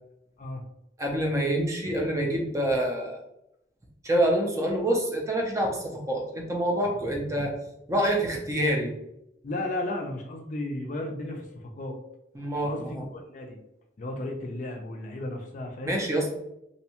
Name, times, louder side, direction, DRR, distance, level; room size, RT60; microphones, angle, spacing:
voice 1, 1.0-3.2 4.0-7.5 7.9-8.9 12.4-13.0 15.8-16.3, right 1 dB, 15° right, 0 dB, 0.4 m, -26 dB
voice 2, 9.4-12.0 12.6-13.6 14.0-16.0, left 1 dB, 45° left, 3 dB, 0.4 m, -34 dB
2.7 x 2.2 x 2.8 m, 0.83 s
head